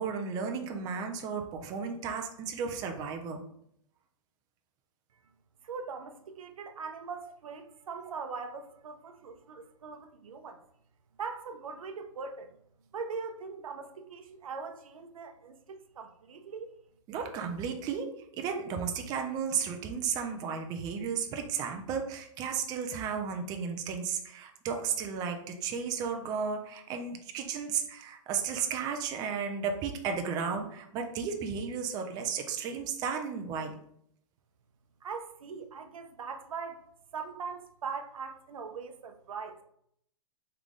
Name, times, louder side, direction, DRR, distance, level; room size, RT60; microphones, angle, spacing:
voice 1, 0.0-3.4 17.1-33.8, right 6 dB, 20° right, 0.5 m, -34 dB
voice 2, 5.6-10.6 11.2-12.5 12.9-16.7 35.0-36.9 37.1-39.6, right 5 dB, 85° right, 0.7 m, -41 dB
3.6 x 3.3 x 3.7 m
hypercardioid pair, 145°, 17 cm